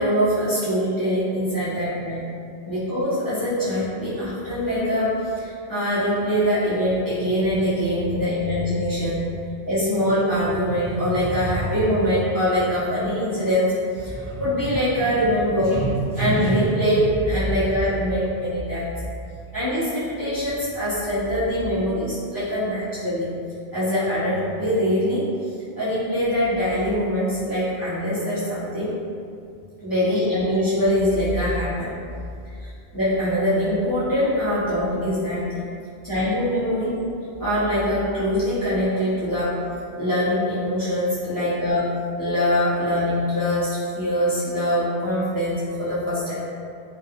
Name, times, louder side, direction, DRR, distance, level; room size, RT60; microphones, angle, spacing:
voice 1, 0.0-2.2 2.7-9.2 9.7-18.9 19.5-23.3 23.7-25.2 25.7-28.9 29.8-31.9 32.6-35.6 36.0-37.0 37.4-39.6 40.0-41.9 42.2-46.4, equal, 25° left, -14 dB, 0.6 m, -23 dB
2.4 x 2.3 x 2.7 m, 2.4 s
omnidirectional pair, 1.1 m